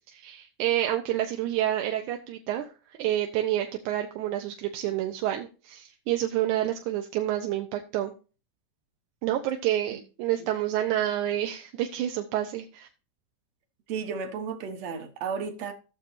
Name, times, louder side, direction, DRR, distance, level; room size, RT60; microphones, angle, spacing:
voice 1, 0.1-2.7 3.0-8.1 9.2-12.9, right 12 dB, 80° right, 2.2 m, -28 dB
voice 2, 13.9-15.7, right 6 dB, 65° right, 2.2 m, -33 dB
14.0 x 6.9 x 2.7 m
omnidirectional pair, 3.6 m